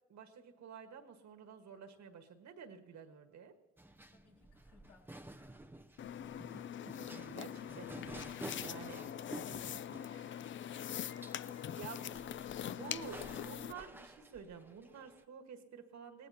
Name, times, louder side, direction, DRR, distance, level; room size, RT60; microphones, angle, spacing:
voice 1, 0.1-3.5 7.1-9.0 9.5-10.6 11.7-12.0 12.7-16.3, right 6 dB, 65° right, 5 dB, 1.6 m, -51 dB
sound 1, 3.8-15.2, right 1 dB, 5° right, 0.6 m, -52 dB
voice 2, 4.1-5.2 7.5-7.7 10.7-12.9, left 4 dB, 80° left, -1 dB, 4.0 m, -62 dB
sound 2, 6.0-13.7, left 10 dB, 40° left, 0.4 m, -43 dB
22.5 x 17.5 x 2.9 m, 1.2 s
cardioid pair, 90°, 30 cm